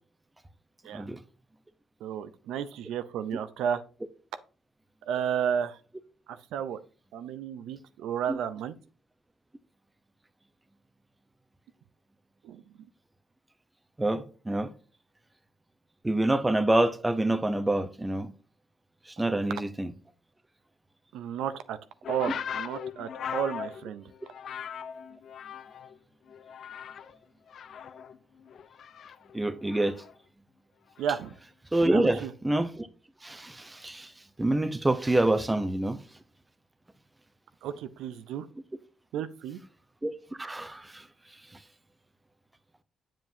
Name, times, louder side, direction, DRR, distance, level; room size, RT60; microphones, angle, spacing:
voice 1, 2.0-3.8 5.1-5.8 6.3-6.8 7.1-8.7 12.4-12.6 21.1-21.8 22.1-24.1 31.0-31.4 31.9-32.3 37.6-38.5 39.1-39.6, right 8 dB, 85° right, 0.6 m, -32 dB
voice 2, 14.0-14.7 16.0-18.3 19.2-19.9 29.3-30.0 31.7-32.9 33.2-34.1 34.4-36.0 40.0-40.1 40.4-41.0, right 1 dB, 15° right, 0.8 m, -26 dB
sound 1, 22.0-26.0 26.3-27.2 27.5-30.1 31.0-31.3, left 8 dB, 60° left, 0.5 m, -39 dB
7.5 x 7.4 x 2.7 m
cardioid pair, 95°, 0 cm